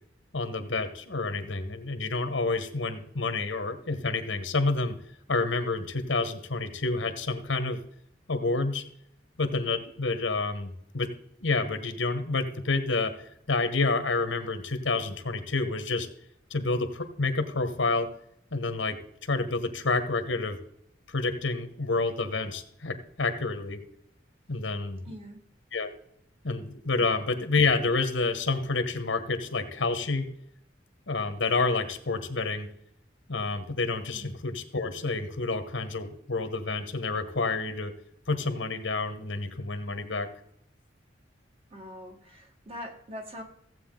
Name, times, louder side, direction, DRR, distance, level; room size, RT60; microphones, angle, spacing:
voice 1, 0.3-5.0 5.3-7.8 8.3-8.8 9.4-11.1 11.4-13.1 13.5-16.1 16.5-18.1 18.5-20.6 21.1-23.8 24.5-25.1 25.7-25.9 26.4-30.3 31.1-32.7 33.3-37.9 38.3-40.3, left 3 dB, 90° left, 8 dB, 1.4 m, -29 dB
voice 2, 25.1-25.4 27.0-27.1 34.1-34.3 41.7-43.4, left 1 dB, 30° right, 3 dB, 1.7 m, -42 dB
15.0 x 8.1 x 3.9 m, 0.71 s
head